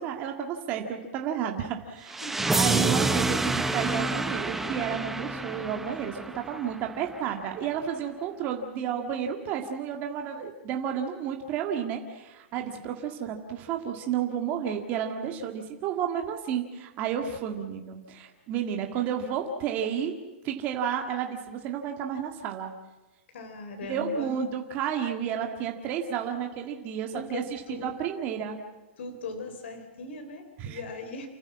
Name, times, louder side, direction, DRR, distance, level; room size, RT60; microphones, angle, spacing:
voice 1, 0.0-20.1 20.4-22.7 23.9-28.6 30.6-30.8, right 8 dB, 25° right, 3 dB, 1.9 m, -31 dB
sound 1, 2.1-7.0, right 2 dB, 5° right, 0.6 m, -28 dB
voice 2, 2.2-2.6 12.6-12.8 23.3-24.4 27.1-27.9 29.0-31.3, left 3 dB, 70° left, 5 dB, 4.0 m, -39 dB
29.0 x 14.5 x 7.4 m, 1.1 s
supercardioid pair, 170°, 7 cm